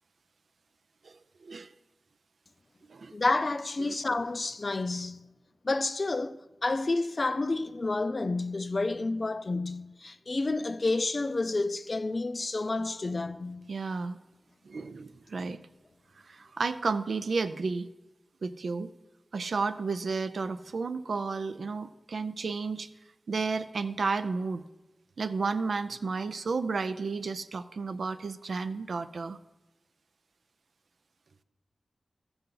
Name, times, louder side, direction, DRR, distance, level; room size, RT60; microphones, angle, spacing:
voice 1, 3.1-5.3 5.6-13.6, left 3 dB, 45° left, 0.4 m, -30 dB
voice 2, 13.7-14.2 14.7-15.6 16.3-17.9 18.4-18.9 19.3-22.9 23.3-24.6 25.2-29.4, right 4 dB, 80° right, 0.4 m, -32 dB
13.5 x 6.9 x 3.8 m
wide cardioid pair, 75°, 0 cm